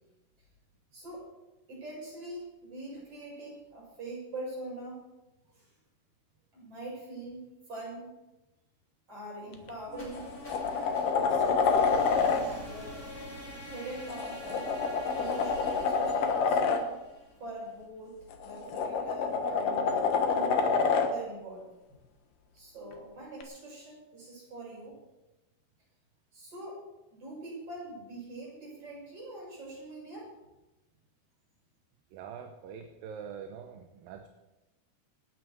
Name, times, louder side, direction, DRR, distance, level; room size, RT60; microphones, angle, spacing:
voice 1, 0.9-1.3 1.7-5.0 5.5-5.7 6.5-8.1 9.1-10.3 10.7-13.1 13.7-14.7 15.1-16.6 17.4-21.7 22.5-25.0 26.3-26.8 27.1-30.3, right 1 dB, 35° right, -4 dB, 7.7 m, -43 dB
sound 1, 9.5-9.7 10.1-12.4 14.1-16.8 18.3-21.1 23.4-23.5, left 5 dB, 65° left, 2.7 m, -27 dB
sound 2, 9.9-17.8, equal, 15° left, 6.0 m, -45 dB
voice 2, 32.1-34.3, right 7 dB, 70° right, 5 dB, 2.5 m, -44 dB
27.0 x 9.1 x 4.7 m, 1.0 s
omnidirectional pair, 4.5 m